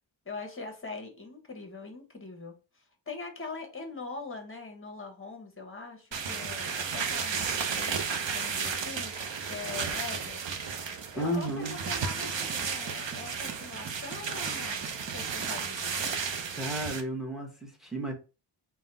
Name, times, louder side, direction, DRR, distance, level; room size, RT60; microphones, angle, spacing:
voice 1, 0.2-10.4 11.1-16.2, left 3 dB, 25° left, 1.1 m, -42 dB
sound 1, 6.1-17.0, right 6 dB, 70° right, 0.7 m, -33 dB
voice 2, 11.2-11.8 16.5-18.1, right 1 dB, ahead, 1.1 m, -33 dB
sound 2, 11.5-15.7, right 7 dB, 30° right, 0.5 m, -48 dB
3.8 x 2.3 x 4.0 m
wide cardioid pair, 90°, 47 cm